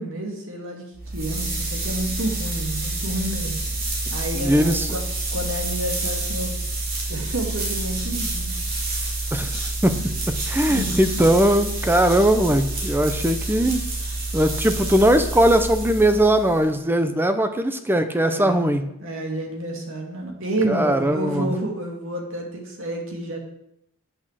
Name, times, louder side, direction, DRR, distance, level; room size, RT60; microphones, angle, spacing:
voice 1, 0.0-3.5 4.1-5.0 5.3-6.5 7.1-8.5 10.7-11.0 18.2-18.7 19.0-23.4, right 1 dB, 65° right, 2 dB, 2.4 m, -29 dB
sound 1, 0.9-16.7, right 2 dB, 45° right, 3.1 m, -28 dB
voice 2, 4.3-4.9 9.3-9.5 9.8-10.0 10.5-13.8 14.3-18.8 20.6-21.5, right 1 dB, 10° right, 8 dB, 0.8 m, -19 dB
8.7 x 6.3 x 7.5 m, 0.78 s
head